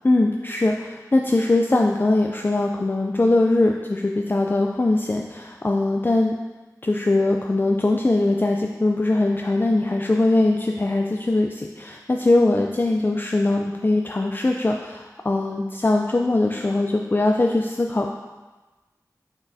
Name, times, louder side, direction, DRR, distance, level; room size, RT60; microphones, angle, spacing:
voice 1, 0.0-6.4 6.8-18.1, left 2 dB, 30° left, 1 dB, 0.4 m, -21 dB
6.1 x 5.7 x 2.7 m, 1.2 s
wide cardioid pair, 55°, 7 cm